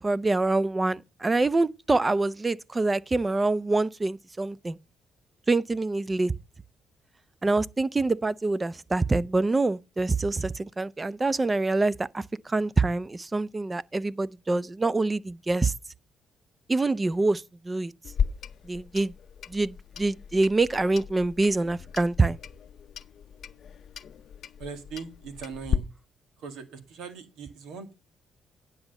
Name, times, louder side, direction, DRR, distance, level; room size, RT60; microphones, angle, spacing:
voice 1, 0.0-4.8 5.5-6.3 7.4-15.7 16.7-17.9 18.6-19.1 19.5-22.4, right 3 dB, 20° right, 0.5 m, -25 dB
Clock, 18.0-25.8, left 7 dB, 60° left, 0.6 m, -35 dB
voice 2, 24.6-25.9 26.4-27.9, right 6 dB, 90° right, 2.0 m, -40 dB
10.0 x 7.0 x 5.4 m
cardioid pair, 90°, 0 cm